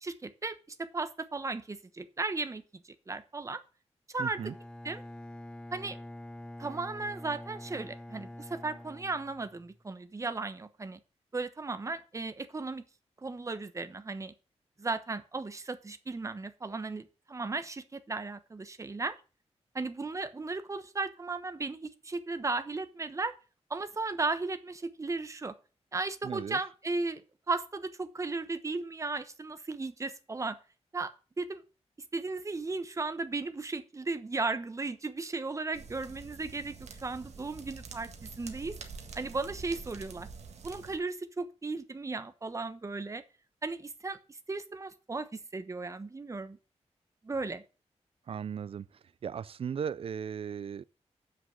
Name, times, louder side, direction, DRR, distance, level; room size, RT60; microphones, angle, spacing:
voice 1, 0.0-0.6 0.9-3.6 4.1-4.4 4.8-5.0 5.7-6.0 6.6-11.0 11.3-12.8 13.2-14.3 14.8-19.2 19.7-23.3 23.7-25.5 25.9-27.2 27.5-30.6 30.9-31.1 31.4-31.6 32.1-38.8 39.1-40.3 40.6-43.2 43.6-46.6 47.2-47.6, right 3 dB, 25° right, 1.0 m, -35 dB
voice 2, 4.2-4.5 26.2-26.6 48.3-48.9 49.2-50.8, right 7 dB, 55° right, 0.4 m, -36 dB
Bowed string instrument, 4.3-9.8, left 1 dB, 5° left, 0.8 m, -46 dB
sound 1, 35.7-41.0, right 5 dB, 75° right, 1.7 m, -46 dB
7.9 x 6.0 x 7.6 m
wide cardioid pair, 125°, 11 cm